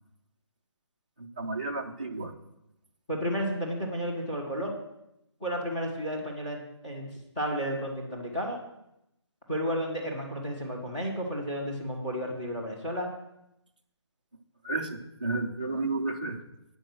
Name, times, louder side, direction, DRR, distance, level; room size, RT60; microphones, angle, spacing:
voice 1, 1.2-2.3 14.6-16.4, right 3 dB, 15° right, -1 dB, 0.5 m, -32 dB
voice 2, 3.1-4.7 5.4-7.1 7.3-8.6 9.5-13.1, equal, 15° left, -6 dB, 1.6 m, -32 dB
9.0 x 6.6 x 6.1 m, 0.85 s
hypercardioid pair, 180°, 15 cm